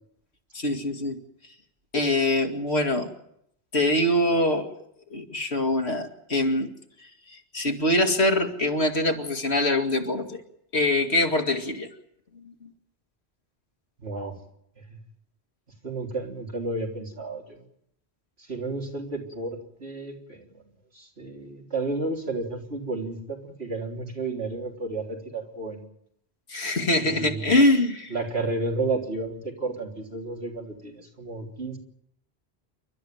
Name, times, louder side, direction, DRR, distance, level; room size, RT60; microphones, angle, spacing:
voice 1, 0.5-1.2 1.9-3.1 3.7-4.7 5.1-6.7 7.5-10.4 10.7-11.9 26.5-28.1, left 1 dB, 75° left, 4 dB, 2.5 m, -23 dB
voice 2, 14.0-14.4 14.9-15.0 15.8-17.6 18.5-20.6 20.9-25.8 27.1-27.5 28.1-31.8, right 3 dB, 70° right, 1 dB, 4.0 m, -32 dB
28.5 x 13.0 x 9.1 m, 0.75 s
omnidirectional pair, 1.1 m